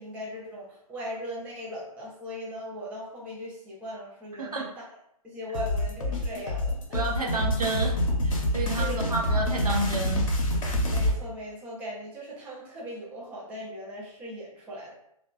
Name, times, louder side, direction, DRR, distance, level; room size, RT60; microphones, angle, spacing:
voice 1, 0.0-4.8 5.2-7.1 8.7-9.1 10.9-15.0, equal, 5° right, -6 dB, 0.4 m, -39 dB
voice 2, 4.3-4.7 6.9-7.9 8.2-10.3, right 2 dB, 75° right, 0 dB, 0.7 m, -30 dB
sound 1, 5.5-11.2, left 1 dB, 60° left, 0.7 m, -27 dB
2.8 x 2.2 x 2.4 m, 0.75 s
figure-of-eight pair, 125°, 19 cm